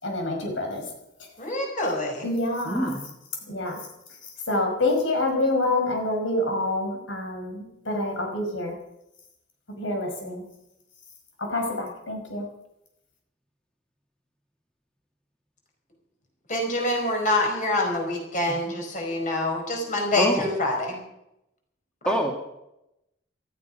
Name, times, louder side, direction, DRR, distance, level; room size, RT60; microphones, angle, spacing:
voice 1, 0.0-0.9 1.2-1.3 2.2-3.0 3.5-3.8 4.2-8.8 9.8-10.4 11.4-12.5, left 2 dB, 85° left, 2 dB, 5.2 m, -27 dB
voice 2, 1.4-2.3 16.5-21.0 22.0-22.2, left 1 dB, 40° left, 1 dB, 5.0 m, -26 dB
voice 3, 2.7-3.1 18.5-18.7 20.2-20.5 22.1-22.3, right 1 dB, 5° left, 1 dB, 1.9 m, -26 dB
18.5 x 14.0 x 5.4 m, 0.86 s
head